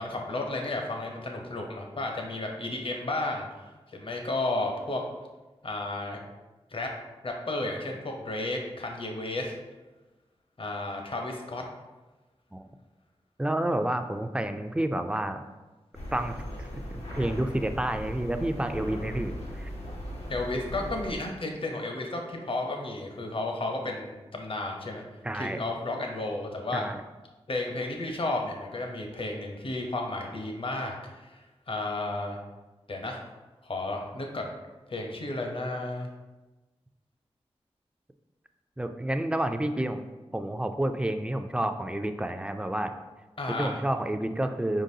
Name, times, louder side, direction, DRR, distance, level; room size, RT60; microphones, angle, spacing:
voice 1, 0.0-3.5 3.9-5.0 5.6-6.2 6.7-6.9 7.2-9.5 10.6-11.6 20.3-25.0 25.3-26.8 27.5-31.4 31.7-32.4 32.9-33.2 33.6-34.5 34.9-36.1 43.4-43.8, left 2 dB, 55° left, 1 dB, 0.8 m, -32 dB
voice 2, 13.4-15.4 16.1-16.4 16.9-19.7 25.2-25.6 26.7-27.0 38.8-42.9 43.5-44.8, right 1 dB, 10° right, 7 dB, 0.4 m, -29 dB
sound 1, 15.9-21.1, equal, 80° left, 0.8 m, -38 dB
4.6 x 3.9 x 2.7 m, 1.2 s
cardioid pair, 50°, 11 cm